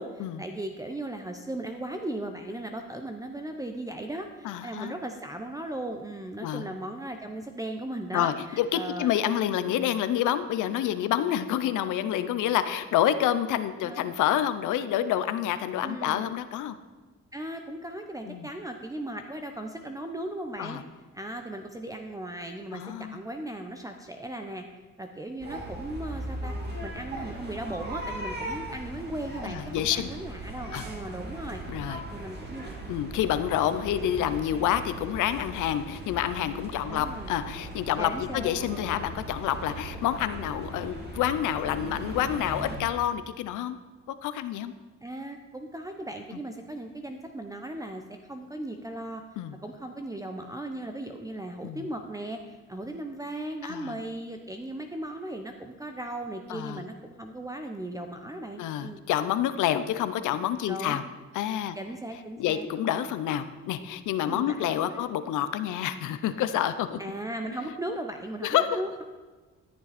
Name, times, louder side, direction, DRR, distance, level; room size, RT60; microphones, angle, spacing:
voice 1, 0.0-9.1 9.7-9.9 13.8-14.0 15.8-16.3 17.3-20.8 21.1-24.6 25.0-31.6 32.1-32.9 36.9-37.3 38.0-38.9 45.0-48.0 48.3-49.2 49.6-59.0 60.7-61.0 61.8-63.1 64.3-65.0 67.0-69.0, right 1 dB, 10° right, 5 dB, 0.7 m, -37 dB
voice 2, 4.4-4.9 6.4-6.7 8.1-16.8 18.3-18.5 20.6-20.8 22.7-23.2 29.5-30.1 30.7-30.8 31.7-32.0 32.9-43.8 44.1-44.7 49.4-49.6 51.6-51.8 53.7-53.9 56.5-56.8 58.6-61.0 61.3-61.8 62.4-67.0 68.4-68.7, left 11 dB, 85° left, 12 dB, 0.7 m, -28 dB
sound 1, 25.4-42.8, right 1 dB, 35° right, 2.4 m, -38 dB
13.0 x 7.0 x 4.2 m, 1.3 s
cardioid pair, 90°, 30 cm